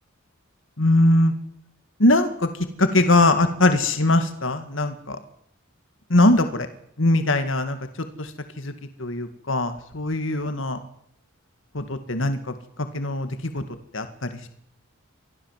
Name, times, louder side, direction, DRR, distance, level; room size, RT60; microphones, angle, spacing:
voice 1, 0.8-1.3 2.0-2.5 2.8-5.2 6.1-6.7 7.0-7.8 8.2-8.3 8.6-8.7 9.0-10.8 11.7-12.4 12.8-13.3 13.5-13.6 13.9-14.5, left 2 dB, 65° left, 8 dB, 2.1 m, -21 dB
24.5 x 16.0 x 7.5 m, 0.67 s
head